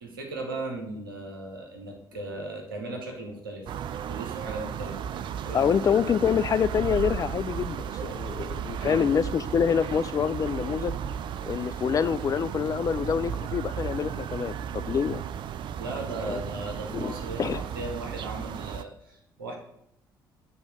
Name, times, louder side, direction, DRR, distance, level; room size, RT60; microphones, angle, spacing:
voice 1, 0.0-3.8 4.1-5.7 8.8-9.0 15.8-19.6, right 2 dB, 80° right, 2 dB, 1.0 m, -37 dB
sound 1, 3.7-18.8, right 8 dB, 45° right, 0.3 m, -34 dB
voice 2, 5.5-10.9 11.4-15.2 16.3-16.4 16.9-17.1 17.4-17.6, left 7 dB, 30° left, 14 dB, 0.3 m, -26 dB
7.0 x 3.4 x 5.0 m, 0.75 s
figure-of-eight pair, 50°, 11 cm